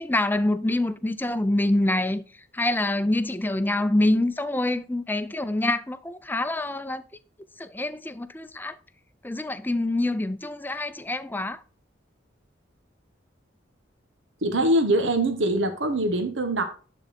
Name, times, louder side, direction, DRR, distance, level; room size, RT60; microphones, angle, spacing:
voice 1, 0.0-2.2 2.5-7.0 7.6-8.7 9.2-11.6, left 1 dB, 10° left, 0.5 m, -26 dB
voice 2, 14.4-16.6, right 1 dB, 90° right, 1.4 m, -23 dB
11.0 x 4.1 x 4.2 m
head